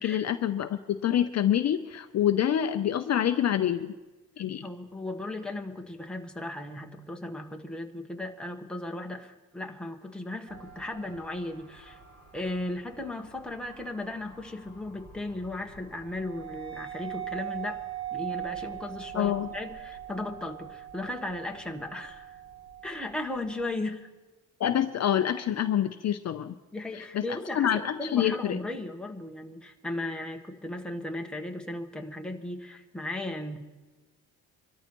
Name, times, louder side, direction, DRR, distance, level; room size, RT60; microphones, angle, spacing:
voice 1, 0.0-3.9 4.4-4.7 19.1-19.5 24.6-26.5 26.9-28.6, left 10 dB, 45° left, 8 dB, 0.6 m, -27 dB
voice 2, 4.6-12.0 12.3-17.8 18.1-22.4 22.8-24.1 26.7-33.6, left 2 dB, ahead, 2 dB, 1.1 m, -36 dB
sound 1, 10.5-23.7, right 10 dB, 45° right, 2.9 m, -42 dB
25.5 x 13.5 x 3.0 m, 1.2 s
cardioid pair, 130°, 37 cm